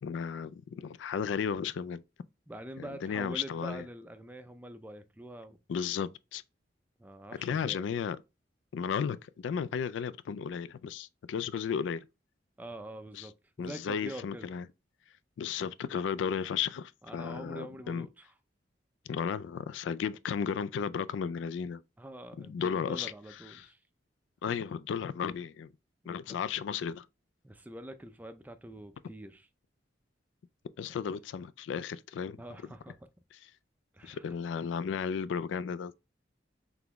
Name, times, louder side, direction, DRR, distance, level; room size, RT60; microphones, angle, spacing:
voice 1, 0.0-2.0 2.8-3.8 5.7-6.4 7.4-8.2 8.7-12.0 13.1-13.3 13.6-14.7 15.4-18.1 19.1-21.8 22.4-23.1 23.6-23.7 24.4-25.7 26.1-27.0 30.8-32.4 34.0-35.9, left 7 dB, 75° left, 0.3 m, -34 dB
voice 2, 2.5-5.6 7.0-7.8 12.6-14.5 17.0-18.3 22.0-23.8 26.3-26.4 27.4-29.5 30.9-31.0 32.4-33.1 33.9-34.4, right 1 dB, 10° right, 0.4 m, -45 dB
4.0 x 3.4 x 2.9 m
head